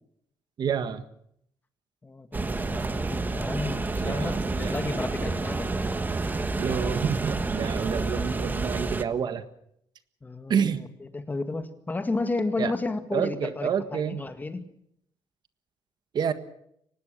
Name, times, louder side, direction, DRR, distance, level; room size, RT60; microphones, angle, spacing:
voice 1, 0.6-1.0 4.0-4.7 6.6-9.4 10.5-10.8 12.6-12.7 13.1-14.2 16.1-16.3, right 7 dB, 50° right, 11 dB, 1.6 m, -28 dB
voice 2, 2.0-5.8 10.2-14.6, left 3 dB, 20° left, 9 dB, 2.0 m, -32 dB
sound 1, 2.3-9.0, right 3 dB, 20° right, 1.4 m, -29 dB
24.5 x 19.5 x 6.8 m, 0.72 s
cardioid pair, 130°, 9 cm